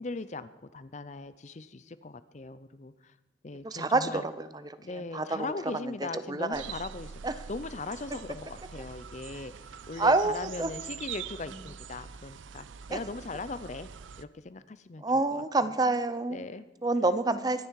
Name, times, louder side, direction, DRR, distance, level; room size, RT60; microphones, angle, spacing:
voice 1, 0.0-3.1 3.4-4.2 4.8-13.9 14.2-15.0 15.3-15.7 16.3-16.7, left 3 dB, 35° left, 14 dB, 0.5 m, -39 dB
voice 2, 3.6-4.5 5.1-5.5 6.3-6.6 7.2-7.3 10.0-10.7 12.9-13.0 15.0-16.4 16.8-17.7, right 2 dB, 20° right, 12 dB, 0.6 m, -27 dB
sound 1, 6.5-14.2, right 7 dB, 80° right, 0.6 m, -44 dB
23.5 x 10.0 x 4.7 m, 1.1 s
head